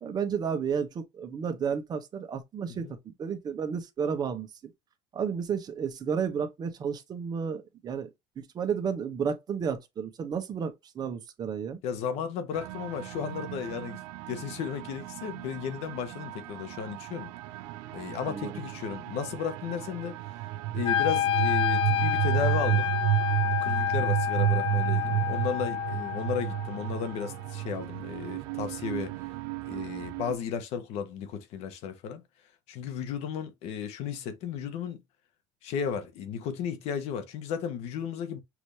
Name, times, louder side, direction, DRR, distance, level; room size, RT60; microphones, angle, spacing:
voice 1, 0.0-4.7 5.1-8.1 8.4-11.8 18.2-18.6, right 6 dB, 35° right, 1.0 m, -32 dB
voice 2, 11.8-14.0 14.3-17.3 17.9-20.2 20.7-22.9 23.4-29.1 29.6-32.2 32.7-35.0 35.6-38.4, left 7 dB, 70° left, 1.2 m, -34 dB
sound 1, 12.5-30.3, right 14 dB, 85° right, 0.6 m, -32 dB
Wind instrument woodwind instrument, 20.8-26.9, left 12 dB, 50° left, 0.4 m, -29 dB
6.0 x 2.8 x 3.2 m
cardioid pair, 120°, 11 cm